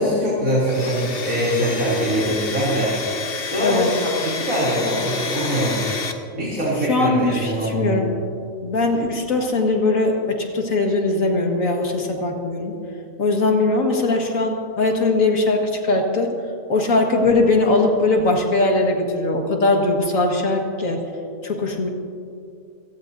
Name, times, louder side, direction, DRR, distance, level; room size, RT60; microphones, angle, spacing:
voice 1, 0.0-2.9 3.5-5.8 6.3-7.9, equal, 80° right, -7 dB, 3.6 m, -22 dB
Domestic sounds home sounds, 0.6-6.1, left 4 dB, 45° left, 1.2 m, -29 dB
voice 2, 3.6-3.9 6.9-8.1 8.6-12.7 13.2-16.3 16.7-21.0 21.4-21.9, left 2 dB, 75° left, 2 dB, 2.2 m, -20 dB
27.0 x 18.0 x 2.7 m, 2.4 s
omnidirectional pair, 1.4 m